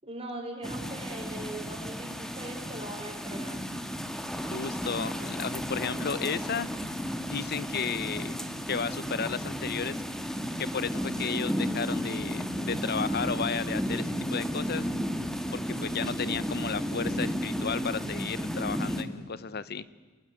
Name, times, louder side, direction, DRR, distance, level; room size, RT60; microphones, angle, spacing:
voice 1, 0.0-3.6, right 2 dB, 30° right, 1 dB, 5.6 m, -40 dB
sound 1, 0.6-19.0, equal, ahead, 1.8 m, -33 dB
voice 2, 4.4-6.7 7.2-8.4 8.7-10.0 10.6-14.9 15.5-19.9, left 5 dB, 50° left, 17 dB, 0.9 m, -33 dB
29.5 x 19.0 x 9.9 m, 1.5 s
head